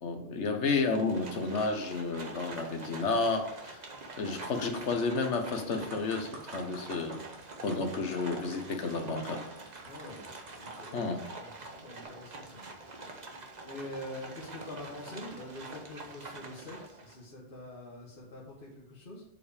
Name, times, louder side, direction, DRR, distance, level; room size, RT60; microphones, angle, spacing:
voice 1, 0.0-3.8 4.2-7.2 7.6-9.4 10.9-11.2, left 3 dB, 85° left, 5 dB, 1.4 m, -31 dB
Livestock farm animals working animals, 0.8-17.2, right 3 dB, 40° right, 1.1 m, -46 dB
sound 1, 4.8-11.2 11.8-12.0, right 1 dB, 80° right, 1.8 m, -52 dB
voice 2, 9.8-10.2 10.5-13.1 13.6-19.2, left 1 dB, 55° left, -3 dB, 1.6 m, -45 dB
7.6 x 5.3 x 5.0 m, 0.82 s
omnidirectional pair, 1.1 m